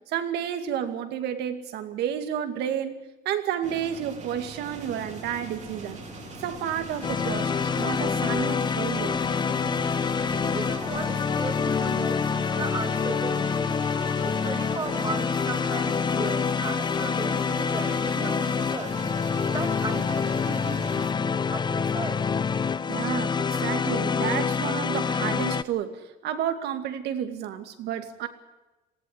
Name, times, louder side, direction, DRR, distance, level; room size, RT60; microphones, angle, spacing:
voice 1, 0.1-3.0 3.2-6.0 6.4-9.1 22.9-28.3, right 9 dB, 80° right, 8 dB, 2.4 m, -31 dB
sound 1, 3.6-21.1, right 5 dB, 45° right, 3.0 m, -42 dB
sound 2, 4.6-12.1, left 5 dB, 40° left, 2.9 m, -47 dB
sound 3, 7.0-25.6, left 6 dB, 25° left, 0.7 m, -26 dB
voice 2, 10.5-13.7 14.2-19.0 19.5-22.2, right 3 dB, 25° right, 6 dB, 2.8 m, -36 dB
19.0 x 15.0 x 9.9 m, 1.1 s
cardioid pair, 110°, 17 cm